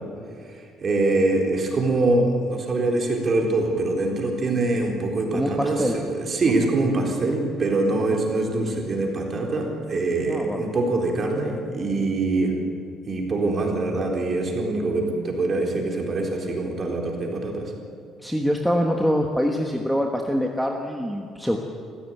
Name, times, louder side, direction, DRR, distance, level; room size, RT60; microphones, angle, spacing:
voice 1, 0.5-12.5 13.1-17.7, right 2 dB, 25° right, 1 dB, 3.9 m, -24 dB
voice 2, 5.3-5.9 8.1-8.2 10.3-10.7 18.2-21.6, equal, ahead, 2 dB, 1.2 m, -24 dB
27.0 x 15.5 x 9.2 m, 2.3 s
cardioid pair, 175°, 0 cm